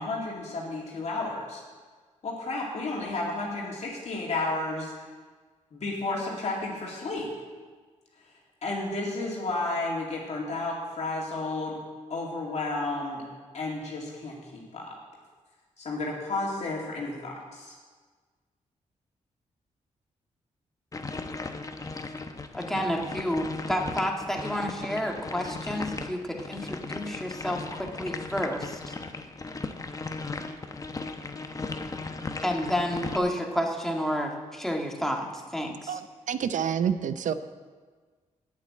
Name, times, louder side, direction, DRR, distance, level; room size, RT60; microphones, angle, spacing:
voice 1, 0.0-1.6 2.2-4.9 5.7-7.3 8.6-11.8 12.1-13.2 13.5-15.0 15.8-17.7, left 2 dB, 60° left, -3 dB, 2.3 m, -32 dB
sound 1, 20.9-33.2, left 3 dB, 25° left, 0.8 m, -37 dB
voice 2, 22.5-28.9 32.4-35.9, equal, 5° left, 1 dB, 1.7 m, -30 dB
voice 3, 36.3-37.3, right 8 dB, 75° right, 12 dB, 0.6 m, -27 dB
8.7 x 7.7 x 8.8 m, 1.5 s
cardioid pair, 85°, 13 cm